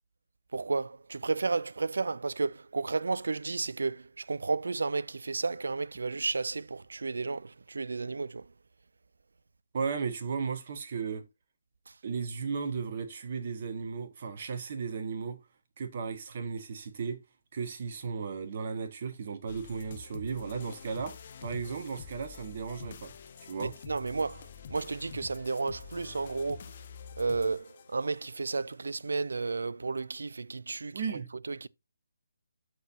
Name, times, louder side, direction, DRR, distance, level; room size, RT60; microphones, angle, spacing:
voice 1, 0.5-8.5 23.6-26.7 27.2-31.2 31.5-31.7, right 4 dB, 65° right, 0.4 m, -32 dB
voice 2, 9.7-11.2 12.0-15.4 15.8-17.2 17.5-21.2 21.4-23.1 23.5-23.7 30.9-31.3, right 5 dB, 40° right, 1.2 m, -35 dB
sound 1, 19.5-28.5, left 7 dB, 40° left, 0.8 m, -47 dB
13.0 x 4.7 x 2.7 m
figure-of-eight pair, 140°, 0 cm